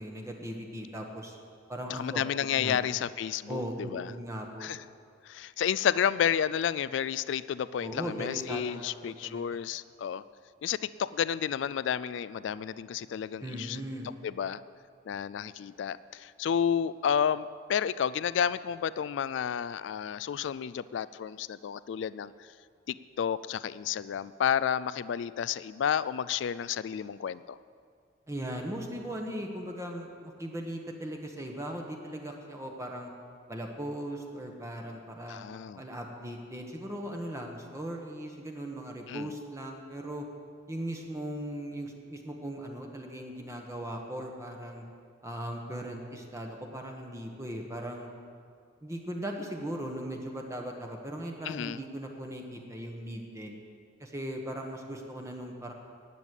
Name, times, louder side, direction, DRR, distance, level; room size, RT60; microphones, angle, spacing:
voice 1, 0.0-1.4 1.7-2.2 2.6-2.8 3.5-4.7 7.8-9.0 9.2-9.4 13.4-14.1 28.3-33.1 33.5-35.4 35.8-40.3 40.7-44.8 45.2-48.1 48.8-53.6 54.0-55.7, right 1 dB, 15° right, 1 dB, 1.1 m, -38 dB
voice 2, 1.9-4.1 4.6-4.8 5.3-10.2 10.6-13.8 14.2-14.6 15.1-22.3 22.9-27.6 35.3-35.8 39.1-39.3 51.5-51.8, left 8 dB, 65° left, 16 dB, 0.3 m, -31 dB
12.0 x 9.2 x 8.2 m, 2.2 s
head